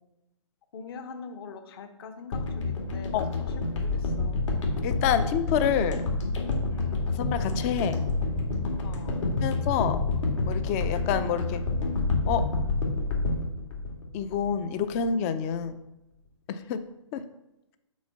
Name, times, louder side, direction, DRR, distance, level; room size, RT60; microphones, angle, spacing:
voice 1, 0.7-4.4 6.7-7.0 8.8-9.2 16.5-16.7, left 5 dB, 45° left, 7 dB, 1.0 m, -44 dB
sound 1, 2.3-14.6 14.9-15.1, left 3 dB, 65° left, 1.8 m, -28 dB
voice 2, 4.8-6.1 7.2-8.0 9.4-10.0 10.5-11.6 12.3-12.5 14.1-15.8 16.7-16.8 17.1-17.2, left 8 dB, 30° left, 11 dB, 0.5 m, -27 dB
6.2 x 4.4 x 5.6 m, 0.90 s
figure-of-eight pair, 130°, 16 cm